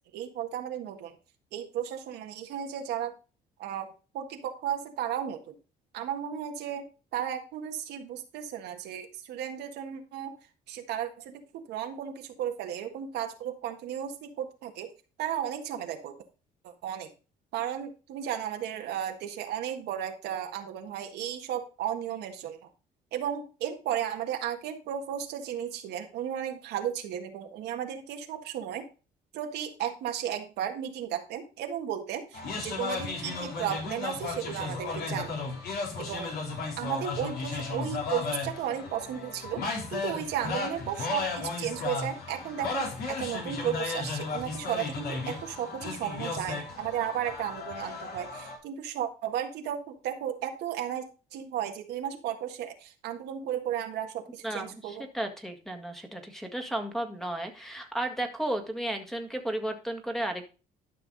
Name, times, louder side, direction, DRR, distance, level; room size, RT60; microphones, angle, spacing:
voice 1, 0.1-1.1 1.5-3.1 3.6-3.9 4.1-5.5 5.9-6.8 7.1-10.3 10.7-14.9 15.2-16.1 16.6-17.1 17.5-22.6 23.1-28.9 29.3-35.4 36.0-36.3 36.8-55.1, right 10 dB, 80° right, 4 dB, 1.7 m, -34 dB
sound 1, 32.3-48.6, left 4 dB, 70° left, 3.7 m, -35 dB
voice 2, 54.4-60.4, right 1 dB, ahead, 5 dB, 1.8 m, -33 dB
12.0 x 5.8 x 4.0 m, 0.34 s
cardioid pair, 110°, 17 cm